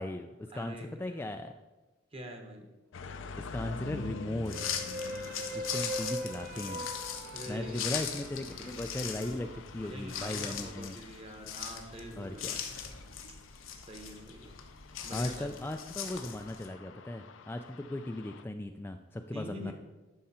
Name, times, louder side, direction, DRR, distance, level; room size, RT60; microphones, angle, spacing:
voice 1, 0.0-1.5 3.4-4.6 5.5-6.9 7.5-11.0 12.2-12.6 15.1-19.7, left 1 dB, 10° left, 5 dB, 0.3 m, -37 dB
voice 2, 0.5-0.9 2.1-2.7 7.2-7.9 9.8-12.5 13.7-14.5 15.0-15.5 19.3-19.7, equal, 30° right, 4 dB, 1.2 m, -44 dB
sound 1, 2.9-18.4, left 4 dB, 70° left, 0.5 m, -47 dB
sound 2, 4.4-16.7, left 8 dB, 90° left, 1.0 m, -40 dB
sound 3, 4.5-9.6, equal, 45° right, 0.8 m, -41 dB
11.5 x 5.6 x 4.3 m, 1.1 s
head